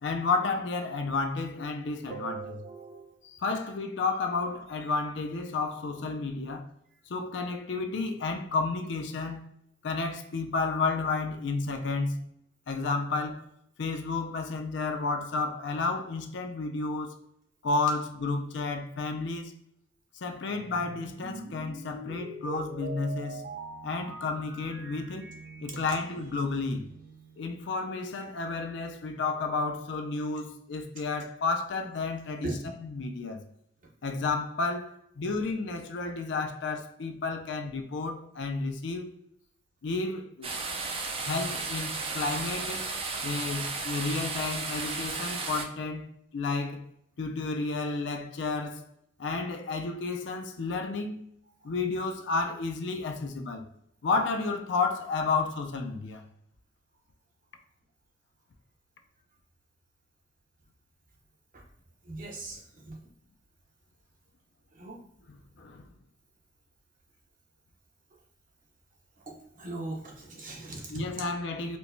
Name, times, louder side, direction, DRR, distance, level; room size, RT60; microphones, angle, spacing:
voice 1, 0.0-2.6 3.2-6.6 7.1-9.4 9.8-12.3 12.7-13.5 13.8-17.2 17.6-19.5 20.2-23.4 23.8-25.3 25.6-26.9 27.4-33.4 34.0-39.1 39.8-40.5 41.2-42.9 43.2-46.8 47.2-48.9 49.2-51.2 51.6-53.7 54.0-56.2 65.3-65.9 70.9-71.8, left 3 dB, 70° left, 0.4 m, -31 dB
voice 2, 2.1-3.1 32.4-32.5 62.1-62.6 62.9-63.0 64.8-65.0 69.6-70.8, right 3 dB, 45° right, 0.8 m, -38 dB
sound 1, 20.4-27.7, right 2 dB, 85° right, 0.6 m, -43 dB
sound 2, 40.4-45.6, right 3 dB, 30° right, 0.4 m, -34 dB
4.4 x 2.2 x 2.6 m
head